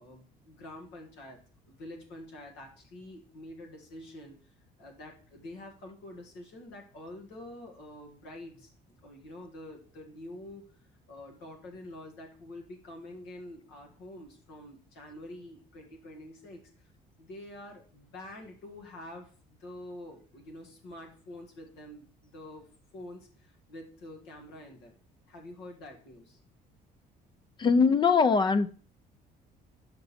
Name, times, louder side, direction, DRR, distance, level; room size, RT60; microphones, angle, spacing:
voice 1, 0.0-1.4 1.7-8.7 9.0-10.7 11.1-16.6 17.2-22.7 22.9-25.0 25.3-26.4, left 1 dB, 85° left, 1.7 m, -47 dB
voice 2, 27.6-28.7, left 5 dB, 30° left, 0.4 m, -22 dB
5.7 x 5.2 x 4.1 m
cardioid pair, 110°, 17 cm